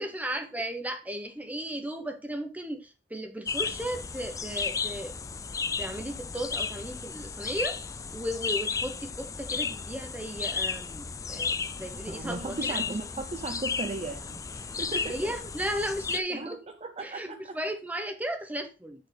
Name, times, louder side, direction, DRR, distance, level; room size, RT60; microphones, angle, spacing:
voice 1, 0.0-5.1 5.8-12.8 15.0-16.6 17.0-19.1, equal, 10° right, 1.1 m, -35 dB
sound 1, 3.5-16.2, left 5 dB, 20° left, 0.3 m, -34 dB
voice 2, 11.9-15.3 16.3-17.6, right 3 dB, 35° right, 0.5 m, -37 dB
9.4 x 4.2 x 4.0 m
head